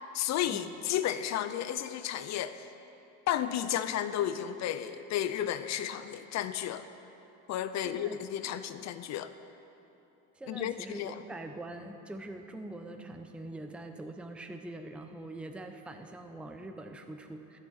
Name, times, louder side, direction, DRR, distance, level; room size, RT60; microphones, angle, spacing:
voice 1, 0.1-2.7 3.3-6.9 7.5-9.3 10.5-11.1, left 11 dB, 40° left, 11 dB, 0.6 m, -33 dB
voice 2, 7.8-8.8 10.3-17.6, right 1 dB, 5° right, 6 dB, 0.7 m, -44 dB
13.5 x 6.3 x 8.7 m, 2.9 s
supercardioid pair, 100°, 41 cm